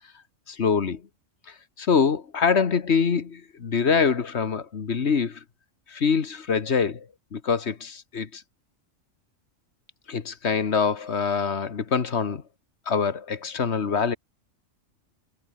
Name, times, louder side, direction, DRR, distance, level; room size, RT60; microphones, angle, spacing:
voice 1, 0.5-1.0 1.5-5.4 5.9-8.4 10.1-12.4 12.9-14.2, left 6 dB, 55° left, 1.6 m, -25 dB
omnidirectional pair, 1.4 m